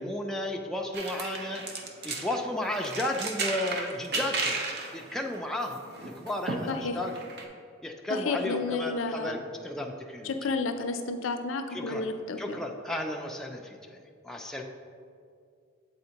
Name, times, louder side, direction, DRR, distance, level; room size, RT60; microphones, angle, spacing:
voice 1, 0.0-1.7 2.0-4.6 4.9-7.2 7.8-9.4 9.6-10.3 11.7-12.0 12.4-14.0 14.2-14.6, left 1 dB, 5° left, 1 dB, 0.3 m, -33 dB
sound 1, 0.9-2.4 2.7-7.4, right 3 dB, 55° right, 0.6 m, -34 dB
voice 2, 6.7-7.0 8.1-9.4 10.2-12.6, left 3 dB, 75° left, 7 dB, 0.4 m, -31 dB
7.9 x 4.2 x 2.8 m, 2.3 s
head